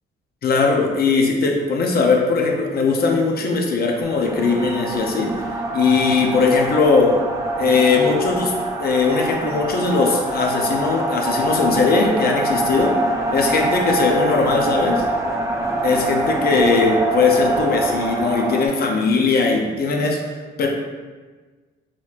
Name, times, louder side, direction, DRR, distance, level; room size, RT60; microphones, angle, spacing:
voice 1, 0.4-5.3 5.7-7.1 7.6-8.5 8.8-12.9 13.3-15.0 15.8-20.2 20.6-20.7, left 4 dB, 50° left, 1 dB, 0.6 m, -19 dB
sound 1, 4.0-18.7, right 1 dB, 15° right, 0.5 m, -24 dB
4.1 x 3.0 x 2.4 m, 1.4 s
cardioid pair, 90°, 20 cm